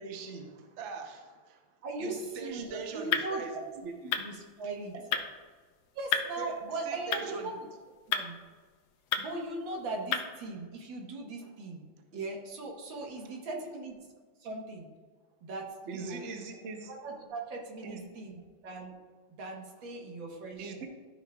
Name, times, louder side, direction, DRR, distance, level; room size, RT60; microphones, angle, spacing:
voice 1, 0.0-1.6 2.0-3.6 3.8-4.2 4.9-5.5 6.4-6.5 6.9-7.5 15.9-16.9 17.8-18.2 20.6-20.9, right 5 dB, 50° right, 3 dB, 0.9 m, -42 dB
voice 2, 1.8-3.6 4.2-4.9 5.9-7.7 8.1-8.4 9.2-14.0 14.4-14.9 15.4-16.2 16.9-18.9 19.3-20.7, right 3 dB, 80° right, 0 dB, 1.9 m, -39 dB
sound 1, 2.4-10.5, left 7 dB, 70° left, 1.3 m, -37 dB
13.0 x 5.2 x 2.3 m, 1.4 s
omnidirectional pair, 2.1 m